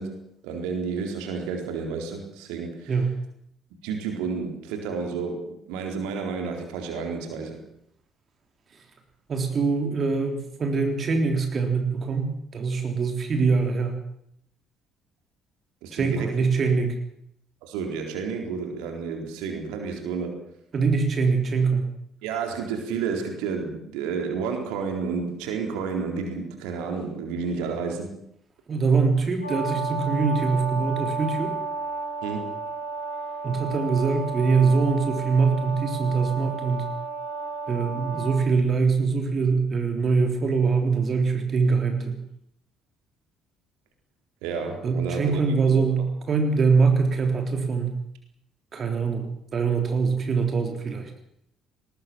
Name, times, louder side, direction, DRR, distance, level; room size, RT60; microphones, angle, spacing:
voice 1, 0.0-2.9 3.8-7.6 15.8-16.5 17.6-20.4 22.2-28.1 32.2-32.6 44.4-45.4 45.7-45.9, right 5 dB, 65° right, 4 dB, 4.1 m, -31 dB
voice 2, 9.3-14.0 15.9-16.9 20.7-21.9 28.7-31.6 33.4-36.9 37.7-42.2 44.8-48.0 48.7-51.1, right 4 dB, 40° right, 4 dB, 3.6 m, -23 dB
Brass instrument, 29.4-38.4, right 3 dB, 85° left, 7.5 m, -32 dB
20.0 x 20.0 x 7.7 m, 0.73 s
figure-of-eight pair, 50°, 0 cm